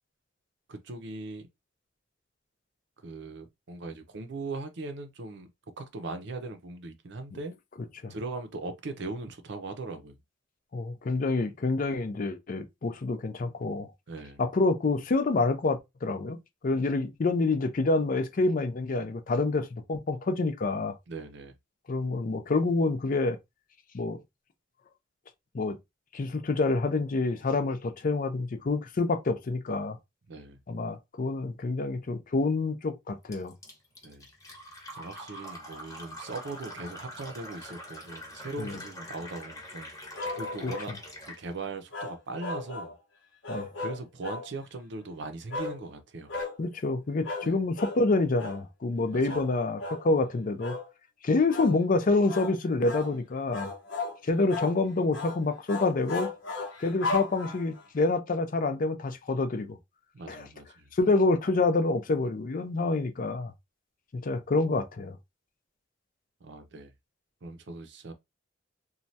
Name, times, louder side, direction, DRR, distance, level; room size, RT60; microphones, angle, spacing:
voice 1, 0.7-1.5 3.0-5.5 5.8-7.6 8.1-10.2 14.1-14.4 21.1-21.5 30.3-30.6 34.0-34.3 34.9-39.9 40.4-40.9 41.3-43.0 43.8-46.3 47.4-47.6 49.1-49.4 60.1-60.9 66.4-66.9 67.4-68.1, right 3 dB, 65° right, 0.6 m, -39 dB
voice 2, 10.7-13.9 14.4-16.4 16.6-20.9 21.9-23.4 23.9-24.2 25.5-25.8 26.1-30.0 30.7-33.5 38.6-38.8 40.6-40.7 43.5-43.7 46.6-50.8 51.2-53.7 54.2-56.3 56.8-59.8 60.3-60.5 60.9-63.5 64.1-65.2, left 3 dB, 45° left, 0.5 m, -27 dB
Fill (with liquid), 33.3-41.4, equal, 15° left, 0.9 m, -44 dB
sound 1, 40.2-40.9 41.9-42.9 43.4-44.5 45.5-45.8 46.3-46.6 47.2-47.5 47.8-48.0 48.4-48.6 49.3-49.5 49.8-50.0 50.6-50.9 51.5-51.8 52.3-52.5 52.9-53.1 53.5-54.2 54.5-54.8 55.1-55.4 55.7-57.8, left 3 dB, 70° left, 0.9 m, -35 dB
3.1 x 2.3 x 2.6 m
head